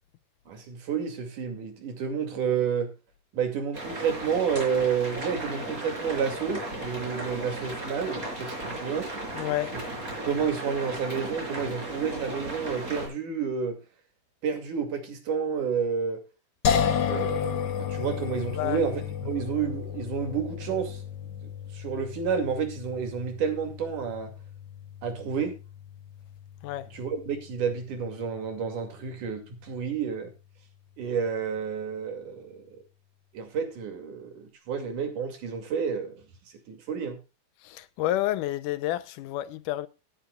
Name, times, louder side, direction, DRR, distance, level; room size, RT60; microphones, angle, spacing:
voice 1, 0.5-2.9 3.3-9.1 9.7-9.8 10.2-13.8 14.4-16.2 17.1-21.0 21.4-24.3 25.0-25.6 26.9-30.3 31.0-32.8 33.3-36.2 36.7-37.2, right 6 dB, 75° right, 3.9 m, -30 dB
sound 1, 3.7-13.1, right 1 dB, 25° right, 5.9 m, -36 dB
voice 2, 9.3-9.8 18.6-18.8 26.6-26.9 37.6-39.9, left 14 dB, 85° left, 2.3 m, -29 dB
sound 2, 16.6-29.7, left 8 dB, 65° left, 1.0 m, -33 dB
18.5 x 9.1 x 2.4 m
omnidirectional pair, 3.6 m